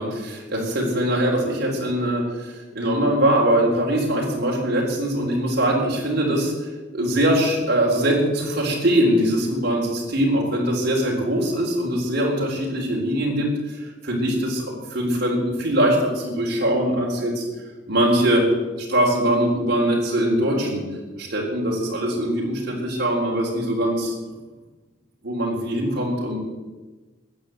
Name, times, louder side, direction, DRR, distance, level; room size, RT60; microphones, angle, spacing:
voice 1, 0.0-17.4 17.9-18.5 18.8-20.8 21.2-24.1 25.2-26.4, right 1 dB, 55° right, -3 dB, 3.8 m, -22 dB
14.5 x 9.7 x 7.8 m, 1.2 s
head